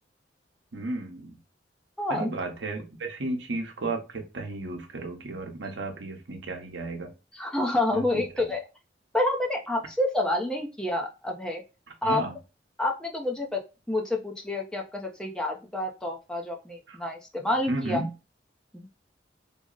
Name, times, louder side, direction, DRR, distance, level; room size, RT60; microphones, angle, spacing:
voice 1, 0.7-1.4 2.1-7.1 7.9-8.2 12.0-12.3 16.9-17.0 17.7-18.1, right 2 dB, 75° right, 3 dB, 0.8 m, -33 dB
voice 2, 2.0-2.3 7.3-8.6 9.1-11.6 12.0-12.2 12.8-13.6 13.9-18.0 18.7-18.9, left 1 dB, 5° left, 0 dB, 0.5 m, -28 dB
3.7 x 2.0 x 3.7 m, 0.29 s
head